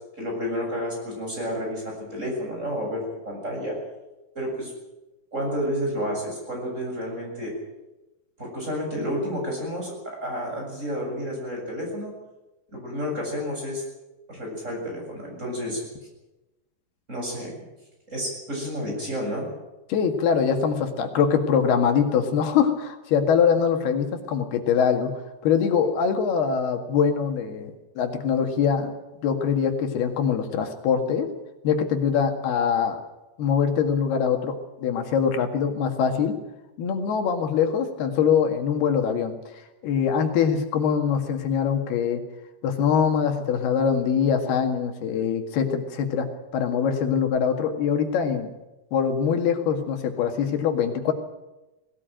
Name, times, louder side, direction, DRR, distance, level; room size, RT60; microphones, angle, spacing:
voice 1, 0.2-3.8 4.3-4.7 5.3-7.5 8.4-9.9 10.2-12.1 12.7-13.8 14.3-15.8 17.1-17.6 18.1-19.5, equal, 20° right, -1 dB, 7.9 m, -30 dB
voice 2, 19.9-28.9 29.2-31.3 31.6-33.0 33.4-36.4 36.8-39.4 39.8-42.2 42.6-48.5 48.9-51.1, left 7 dB, 90° left, 5 dB, 4.0 m, -23 dB
20.0 x 18.0 x 9.1 m, 1.0 s
omnidirectional pair, 4.4 m